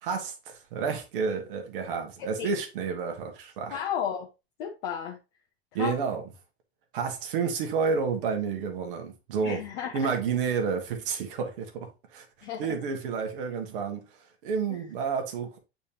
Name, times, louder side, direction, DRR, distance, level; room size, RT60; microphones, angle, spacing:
voice 1, 0.0-3.8 5.7-6.2 6.9-9.6 9.9-14.1 14.4-15.6, right 5 dB, 55° right, 1.8 m, -30 dB
voice 2, 2.2-2.5 3.7-4.3 4.6-5.2 5.7-6.0 9.4-10.1 12.4-12.8 14.7-14.8, left 8 dB, 50° left, 1.1 m, -33 dB
8.4 x 4.4 x 2.9 m
figure-of-eight pair, 80°, 31 cm